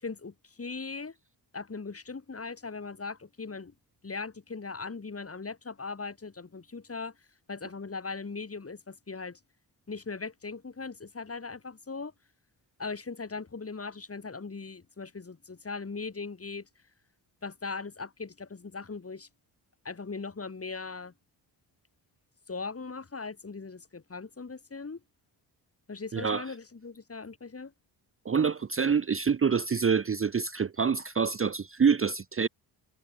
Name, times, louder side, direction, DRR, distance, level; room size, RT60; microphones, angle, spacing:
voice 1, 0.0-1.1 1.5-3.7 4.0-7.1 7.5-9.4 9.9-12.1 12.8-16.7 17.4-19.3 19.8-21.1 22.5-25.0 25.9-27.7, left 4 dB, 30° left, 5.8 m, -39 dB
voice 2, 26.1-26.5 28.2-32.5, right 6 dB, 30° right, 0.8 m, -26 dB
cardioid pair, 100°, 44 cm